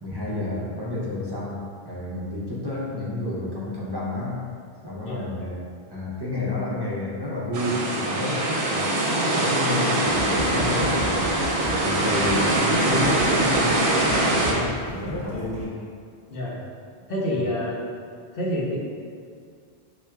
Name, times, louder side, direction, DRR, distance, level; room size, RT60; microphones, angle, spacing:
voice 1, 0.0-4.5 4.8-5.6 5.9-11.3 11.6-15.7 17.3-17.5, left 2 dB, 35° right, -6 dB, 0.4 m, -30 dB
sound 1, 7.5-14.5, right 1 dB, 65° right, 0.7 m, -23 dB
sound 2, 10.0-15.6, equal, 5° right, 0.7 m, -35 dB
voice 2, 17.1-17.8 18.3-18.8, left 1 dB, 65° left, -4 dB, 0.9 m, -27 dB
5.8 x 2.2 x 2.2 m, 2.2 s
omnidirectional pair, 1.1 m